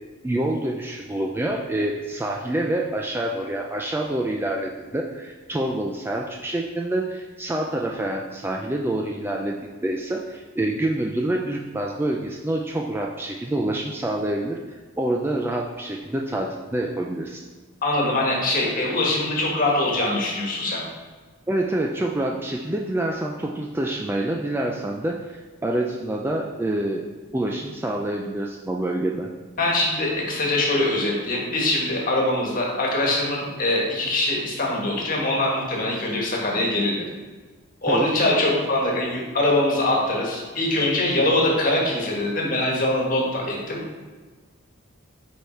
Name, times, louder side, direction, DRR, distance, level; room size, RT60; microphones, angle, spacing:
voice 1, 0.2-9.6 9.8-17.4 18.8-18.9 21.5-27.0 27.3-29.3 37.9-38.1, right 1 dB, 10° right, 0 dB, 0.3 m, -27 dB
voice 2, 17.8-20.8 29.6-37.0 37.8-43.8, left 1 dB, 40° left, -2 dB, 1.4 m, -23 dB
5.2 x 4.8 x 4.4 m, 1.4 s
head